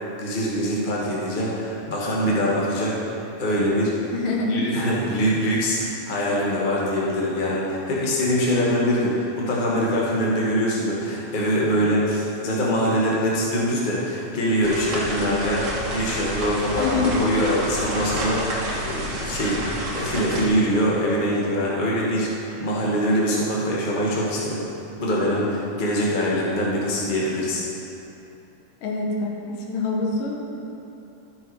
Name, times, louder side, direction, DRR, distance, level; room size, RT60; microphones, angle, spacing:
voice 1, 0.2-3.0 3.4-3.9 4.5-19.6 19.9-22.3 22.6-24.7 25.0-27.6, equal, 65° left, -5 dB, 0.4 m, -23 dB
voice 2, 4.1-4.8 16.8-17.2 28.8-30.6, left 3 dB, 90° left, 0 dB, 2.8 m, -26 dB
sound 1, 14.6-20.5, right 1 dB, 75° right, 0.7 m, -29 dB
12.0 x 5.7 x 4.8 m, 2.9 s
omnidirectional pair, 3.6 m